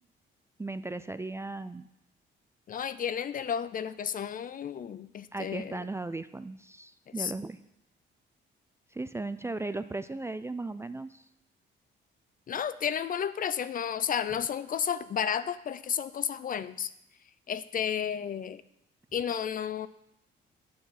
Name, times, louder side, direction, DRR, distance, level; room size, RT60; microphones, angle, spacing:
voice 1, 0.6-1.9 5.3-7.6 8.9-11.2, right 2 dB, 15° right, 12 dB, 0.3 m, -36 dB
voice 2, 2.7-5.8 7.2-7.3 12.5-16.9 17.5-18.6 19.1-19.9, left 8 dB, 45° left, 15 dB, 0.5 m, -32 dB
9.4 x 6.8 x 5.8 m, 0.82 s
cardioid pair, 90°, 20 cm